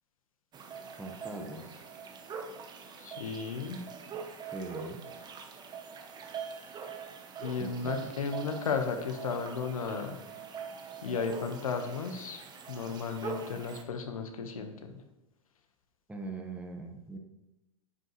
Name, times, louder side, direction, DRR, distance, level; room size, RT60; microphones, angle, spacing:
sound 1, 0.5-13.8, right 6 dB, 25° right, 1.0 m, -43 dB
voice 1, 0.9-1.8 4.5-5.0 7.6-8.1 16.1-17.2, right 2 dB, 10° right, 2 dB, 1.3 m, -41 dB
voice 2, 3.0-3.8 7.4-10.1 11.0-12.4 12.7-14.9, left 5 dB, 80° left, 5 dB, 1.3 m, -34 dB
10.0 x 7.8 x 3.2 m, 1.0 s
hypercardioid pair, 110°, 18 cm